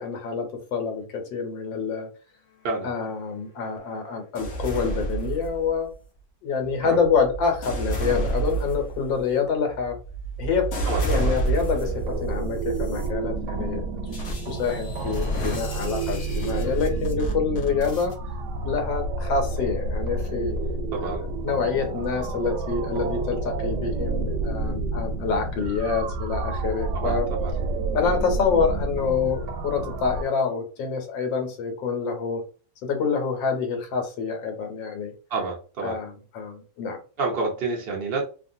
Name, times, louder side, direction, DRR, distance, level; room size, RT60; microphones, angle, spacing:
voice 1, 0.0-2.1 2.8-5.9 6.4-10.0 10.4-10.7 11.0-13.8 14.5-18.1 18.6-20.5 21.0-21.1 21.4-27.3 27.9-32.4 32.8-35.1 35.8-37.0, left 5 dB, 75° left, 3 dB, 1.6 m, -26 dB
sound 1, 4.4-5.9 6.6-12.1 12.7-13.1 14.1-18.1, right 2 dB, 55° left, 0.8 m, -30 dB
voice 2, 10.8-11.4 20.9-21.2 26.9-27.5 35.3-36.0 37.2-38.2, right 3 dB, 90° right, -1 dB, 0.5 m, -29 dB
sound 2, 11.7-30.2, right 3 dB, 70° right, 1.0 m, -29 dB
3.2 x 2.2 x 2.6 m, 0.36 s
omnidirectional pair, 2.1 m